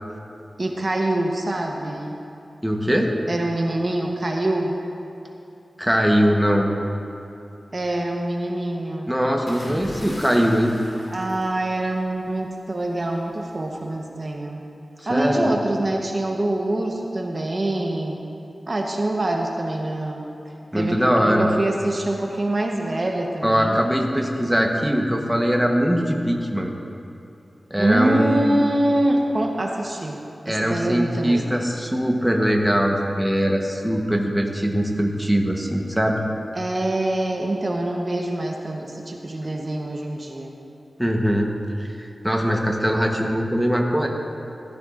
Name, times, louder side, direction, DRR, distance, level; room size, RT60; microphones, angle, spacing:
voice 1, 0.6-2.2 3.3-4.7 7.7-9.1 11.1-14.6 15.1-18.2 18.7-20.2 20.7-23.8 27.8-30.2 30.5-31.5 36.5-40.5, right 1 dB, 45° right, 1 dB, 0.9 m, -25 dB
voice 2, 2.6-3.1 5.8-6.7 9.1-10.7 15.0-15.5 20.7-21.5 23.4-26.7 27.7-28.6 30.5-36.2 41.0-41.5 41.8-44.1, equal, 5° right, 1 dB, 1.0 m, -21 dB
sound 1, 9.5-12.2 13.4-13.7, equal, 55° left, 2.7 m, -38 dB
14.0 x 13.0 x 2.5 m, 2.7 s
wide cardioid pair, 75°, 0 cm